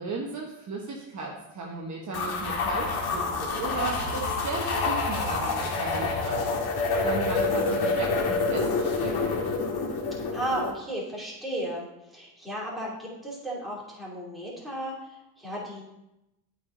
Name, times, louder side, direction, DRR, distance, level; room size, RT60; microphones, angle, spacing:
voice 1, 0.0-6.5 7.0-9.3, right 3 dB, 35° right, -1 dB, 1.2 m, -35 dB
sound 1, 2.1-10.7, left 3 dB, 50° left, 1.7 m, -27 dB
voice 2, 10.3-11.9 12.1-15.8, right 1 dB, ahead, -6 dB, 2.9 m, -34 dB
8.4 x 5.0 x 3.9 m, 0.90 s
supercardioid pair, 95°, 49 cm